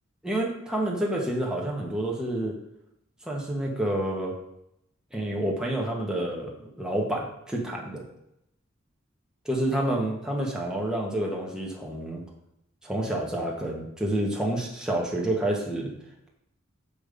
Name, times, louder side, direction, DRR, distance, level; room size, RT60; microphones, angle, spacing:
voice 1, 0.2-2.6 3.2-4.3 5.1-8.0 9.4-12.2 12.8-15.9, right 1 dB, 5° right, -2 dB, 1.3 m, -29 dB
6.8 x 5.2 x 5.2 m, 0.79 s
head